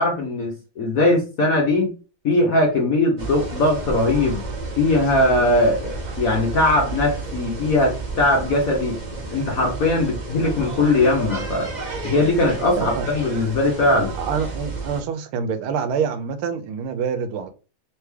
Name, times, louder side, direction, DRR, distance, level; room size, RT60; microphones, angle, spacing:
voice 1, 0.0-1.9 2.2-4.4 4.8-9.0 9.3-11.7 12.0-14.1, left 2 dB, 55° left, 1.0 m, -20 dB
sound 1, 3.2-15.0, right 3 dB, 30° right, 0.8 m, -31 dB
voice 2, 12.8-13.1 14.2-17.5, right 6 dB, 85° right, 1.5 m, -26 dB
3.6 x 3.4 x 3.2 m
omnidirectional pair, 2.3 m